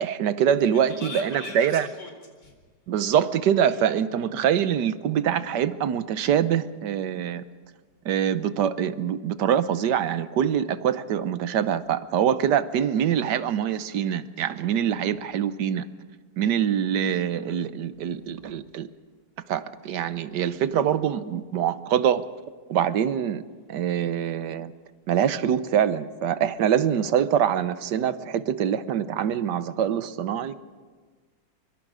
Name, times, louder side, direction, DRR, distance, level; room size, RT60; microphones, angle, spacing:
voice 1, 0.0-1.9 2.9-7.4 8.0-15.9 16.4-18.9 19.5-22.3 22.7-23.4 23.7-24.7 25.1-30.6, right 9 dB, 85° right, 13 dB, 1.5 m, -24 dB
voice 2, 0.9-2.1 2.4-2.5 3.6-3.8 18.0-18.4, left 2 dB, 75° left, 3 dB, 4.8 m, -41 dB
25.0 x 24.0 x 5.0 m, 1.4 s
omnidirectional pair, 1.8 m